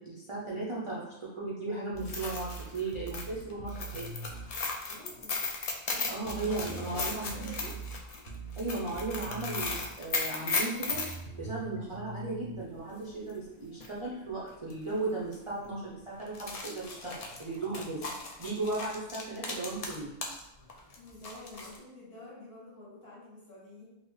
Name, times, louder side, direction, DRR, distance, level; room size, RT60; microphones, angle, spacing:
voice 1, 0.0-4.1 6.1-7.5 8.6-11.0 11.4-18.1 18.4-20.1, right 3 dB, 40° right, -6 dB, 0.4 m, -36 dB
sound 1, 1.9-4.5 6.3-9.9 10.9-12.6, right 3 dB, 70° right, 0.8 m, -43 dB
sound 2, 2.0-11.2 13.3-13.4 13.8-13.9 14.7-14.9 15.2-15.3 16.2-20.4 20.7-21.8, left 4 dB, 75° left, 0.3 m, -36 dB
voice 2, 4.9-5.4 5.8-6.3 6.6-7.7 21.0-23.8, left 1 dB, 55° left, -7 dB, 1.4 m, -49 dB
3.8 x 2.0 x 3.1 m, 0.86 s
omnidirectional pair, 1.2 m